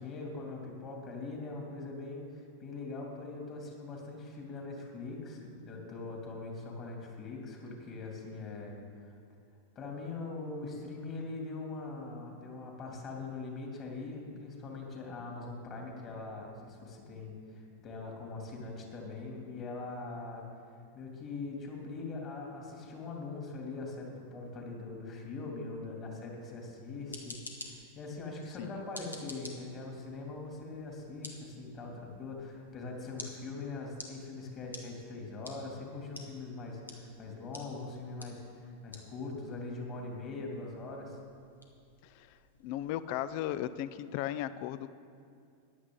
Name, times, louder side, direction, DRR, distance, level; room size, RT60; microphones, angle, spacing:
voice 1, 0.0-8.8 9.0-9.1 9.7-20.4 20.9-41.2, left 3 dB, 30° left, 0 dB, 2.7 m, -42 dB
sound 1, 26.8-43.6, left 2 dB, 80° left, 1.3 m, -52 dB
voice 2, 42.6-44.9, left 12 dB, 45° left, 15 dB, 0.4 m, -36 dB
14.5 x 10.5 x 3.8 m, 2.4 s
figure-of-eight pair, 90°, 0 cm